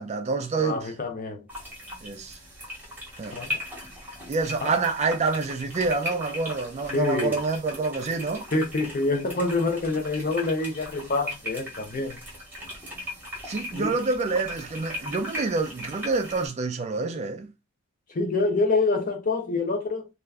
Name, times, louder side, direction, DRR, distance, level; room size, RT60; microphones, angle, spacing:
voice 1, 0.0-0.9 2.0-2.4 3.2-3.4 4.3-8.5 13.4-17.5, right 4 dB, 30° right, 0.3 m, -27 dB
voice 2, 0.6-1.5 3.3-3.6 4.6-4.7 6.9-7.4 8.5-12.2 13.7-14.0 18.1-20.1, left 3 dB, 40° left, 0.5 m, -26 dB
sound 1, 1.5-16.5, left 1 dB, 10° right, 0.9 m, -38 dB
2.4 x 2.2 x 3.3 m
head